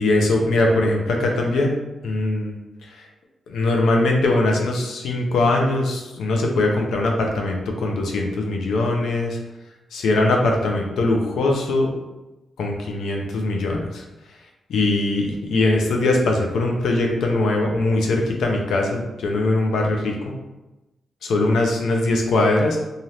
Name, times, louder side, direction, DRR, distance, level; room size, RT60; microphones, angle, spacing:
voice 1, 0.0-1.8 2.0-2.5 2.9-3.0 3.5-9.4 9.9-11.9 12.6-14.0 14.7-20.3 21.2-22.8, left 2 dB, 90° left, 1 dB, 0.6 m, -21 dB
2.8 x 2.5 x 3.2 m, 1.0 s
wide cardioid pair, 160°, 0 cm